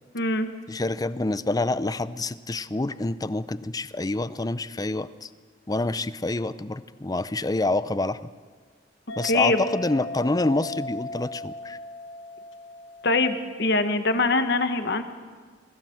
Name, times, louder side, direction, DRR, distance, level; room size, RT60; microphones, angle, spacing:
voice 1, 0.1-0.5 9.3-9.6 13.0-15.0, left 3 dB, 65° left, 8 dB, 1.4 m, -23 dB
voice 2, 0.7-5.3 5.7-8.2 9.2-11.8, left 2 dB, 20° left, 15 dB, 0.6 m, -27 dB
sound 1, 9.1-13.8, left 1 dB, 85° left, 1.4 m, -37 dB
21.0 x 16.0 x 7.8 m, 1.6 s
head